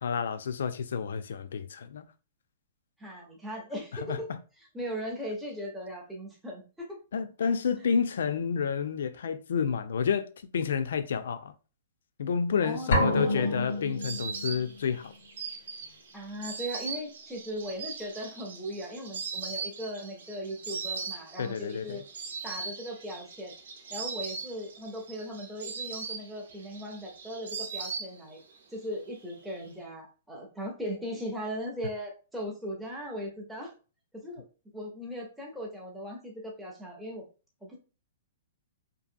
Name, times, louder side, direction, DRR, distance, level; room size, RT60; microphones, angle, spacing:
voice 1, 0.0-2.1 3.9-4.4 7.1-11.5 12.2-15.1 21.4-22.0, left 6 dB, 65° left, 0.3 m, -30 dB
voice 2, 3.0-4.3 4.7-7.0 12.6-13.6 16.1-22.0 22.4-23.5 23.9-28.4 28.7-33.7 34.1-34.5 34.7-37.2 37.6-37.8, equal, ahead, 0.4 m, -38 dB
sound 1, 12.9-14.7, left 1 dB, 90° left, 0.8 m, -28 dB
Insect, 12.9-28.6 28.8-29.6, right 5 dB, 70° right, 0.7 m, -40 dB
2.7 x 2.5 x 2.5 m
hypercardioid pair, 180°, 0 cm